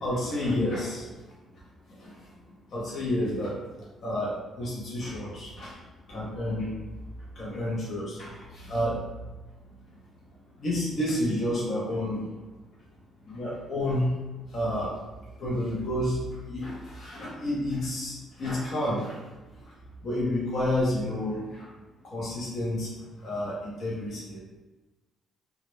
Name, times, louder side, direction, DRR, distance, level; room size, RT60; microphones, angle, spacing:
voice 1, 0.0-1.4 1.9-2.3 2.7-3.6 4.0-6.7 7.3-9.2 9.7-9.8 10.6-12.3 13.3-14.1 14.5-15.0 15.4-19.3 19.6-19.7 20.0-21.7 22.0-24.4, left 1 dB, 55° left, -6 dB, 0.6 m, -30 dB
2.3 x 2.0 x 3.0 m, 1.1 s
cardioid pair, 90°, 0 cm